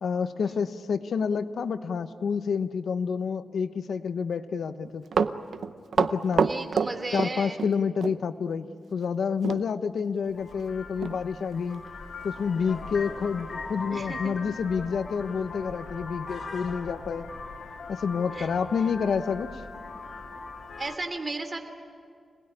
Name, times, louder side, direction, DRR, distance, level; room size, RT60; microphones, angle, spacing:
voice 1, 0.0-5.0 6.0-6.5 7.1-11.8 12.2-17.3 17.9-19.5, left 6 dB, 85° left, 11 dB, 0.9 m, -29 dB
Run, 4.8-8.2 9.4-9.6 10.0-10.1 10.6-10.7 11.0-11.2 11.7-11.8, right 6 dB, 85° right, 0.7 m, -26 dB
voice 2, 6.3-7.6 13.9-14.3 18.3-18.5 20.8-21.6, right 2 dB, 30° right, 6 dB, 3.0 m, -35 dB
Vehicle horn car horn honking, 10.3-21.0, left 4 dB, 65° left, 2.2 m, -40 dB
26.5 x 19.5 x 9.8 m, 2.2 s
wide cardioid pair, 105°, 0 cm